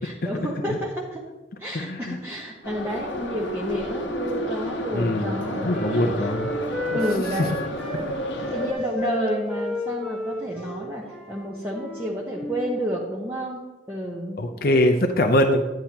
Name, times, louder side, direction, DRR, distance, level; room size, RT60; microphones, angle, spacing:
voice 1, 0.0-1.2 1.6-6.3 6.9-7.6 7.9-14.4, equal, 10° right, -4 dB, 0.9 m, -30 dB
voice 2, 1.7-2.2 4.9-6.5 7.3-7.5 7.9-8.0 14.4-15.6, left 1 dB, 50° left, 3 dB, 0.6 m, -22 dB
Subway metro underground, 2.6-8.7, left 1 dB, 85° left, 1.1 m, -31 dB
Wind instrument woodwind instrument, 4.1-8.0 8.4-12.8, equal, 5° left, 1.1 m, -34 dB
10.5 x 9.9 x 2.9 m, 1.2 s
head